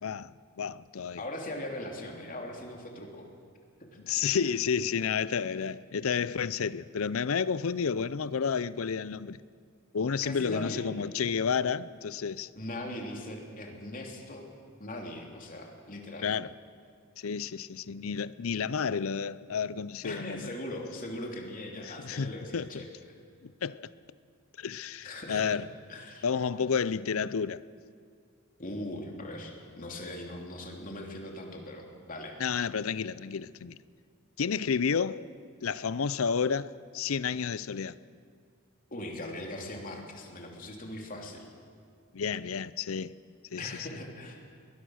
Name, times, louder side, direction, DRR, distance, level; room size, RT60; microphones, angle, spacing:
voice 1, 0.0-1.2 4.0-9.4 9.9-12.5 16.2-16.5 17.2-20.5 21.8-22.7 23.4-23.9 24.6-25.7 26.2-27.6 32.4-33.8 34.4-35.2 35.6-38.0 42.1-43.1 43.5-43.9, left 6 dB, 70° left, 0.5 m, -31 dB
voice 2, 1.2-3.3 4.1-4.4 10.2-10.9 12.5-14.5 14.8-16.3 20.0-22.9 25.0-25.6 25.9-26.2 28.6-32.4 38.9-41.5 43.5-44.4, left 1 dB, 40° left, 3.1 m, -40 dB
22.0 x 20.5 x 6.4 m
head